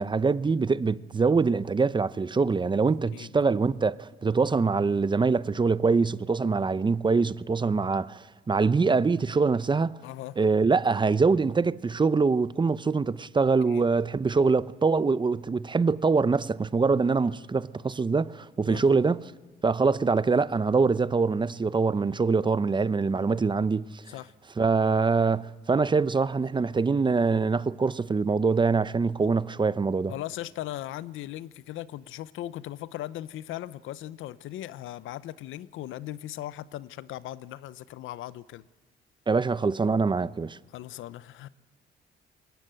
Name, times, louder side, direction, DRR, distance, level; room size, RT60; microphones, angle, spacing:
voice 1, 0.0-10.0 10.4-19.3 19.6-24.0 24.6-30.1 39.3-40.6, right 4 dB, 25° right, 0.6 m, -24 dB
voice 2, 10.0-10.4 13.7-13.9 18.7-19.0 24.1-24.3 30.1-38.6 40.7-41.5, left 14 dB, 85° left, 0.7 m, -38 dB
22.5 x 17.5 x 9.0 m
cardioid pair, 90°, 20 cm